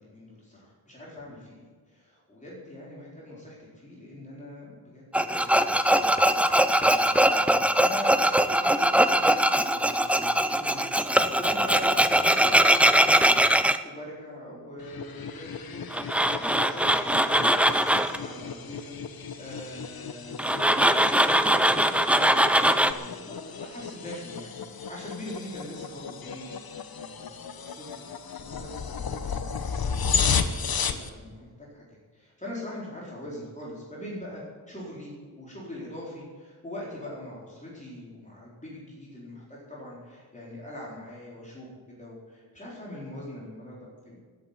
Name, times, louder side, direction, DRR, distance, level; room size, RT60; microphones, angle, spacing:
voice 1, 0.0-5.9 6.4-15.9 16.1-29.6 29.8-31.8 32.1-44.2, left 1 dB, 20° left, -6 dB, 4.4 m, -43 dB
Tools, 5.1-13.8 15.9-18.2 20.4-22.9, right 1 dB, 5° right, 0.5 m, -21 dB
sound 1, 14.8-31.1, left 6 dB, 65° left, 1.1 m, -34 dB
14.0 x 9.0 x 9.8 m, 1.5 s
wide cardioid pair, 155°, 38 cm